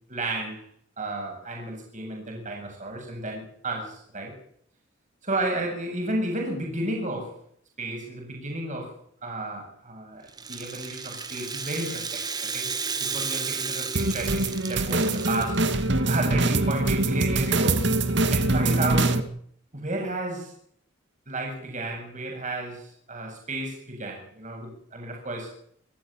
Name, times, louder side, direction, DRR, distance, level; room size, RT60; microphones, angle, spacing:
voice 1, 0.1-0.7 1.0-4.4 5.2-7.4 7.8-8.9 9.2-12.2 12.5-15.6 16.1-17.9 18.3-19.3 19.7-20.5 21.3-25.5, right 2 dB, 40° right, 1 dB, 7.7 m, -32 dB
Rattle (instrument), 10.3-15.8, right 5 dB, 20° right, 1.9 m, -33 dB
sound 1, 14.0-19.2, right 2 dB, 60° right, 2.3 m, -23 dB
29.5 x 13.5 x 9.1 m, 0.65 s
head